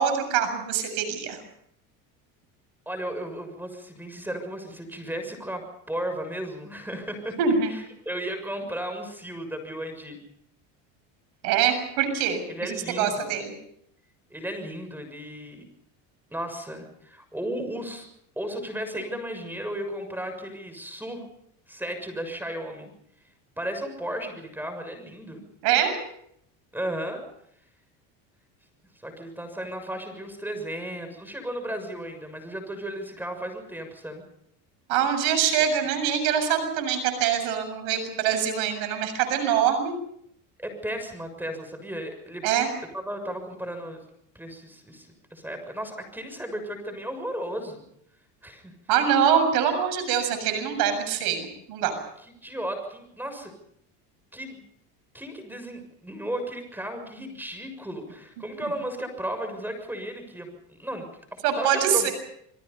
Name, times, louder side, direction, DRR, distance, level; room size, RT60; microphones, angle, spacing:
voice 1, 0.0-1.4 7.4-7.7 11.4-13.5 25.6-26.0 34.9-40.0 42.4-42.7 48.9-51.9 61.4-62.1, right 8 dB, 70° right, 8 dB, 7.3 m, -24 dB
voice 2, 2.9-7.4 7.7-10.2 12.5-13.4 14.3-15.7 16.3-18.1 18.4-21.2 21.7-22.9 23.6-25.5 26.7-27.2 29.0-34.2 40.6-42.5 42.9-44.0 44.4-47.8 48.4-48.7 52.2-53.5 54.3-54.6 55.1-62.1, right 1 dB, 5° right, 7 dB, 6.8 m, -35 dB
28.0 x 23.0 x 5.5 m, 0.71 s
supercardioid pair, 105°, 38 cm